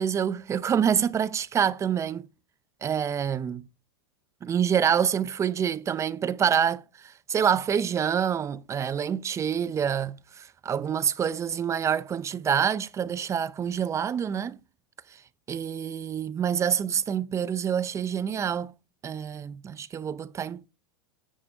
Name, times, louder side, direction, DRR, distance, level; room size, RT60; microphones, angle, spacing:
voice 1, 0.0-2.3 2.8-3.6 4.4-14.6 15.5-18.7 19.0-20.7, right 8 dB, 20° right, 0.5 m, -27 dB
9.5 x 5.6 x 4.8 m
hypercardioid pair, 115°, 14 cm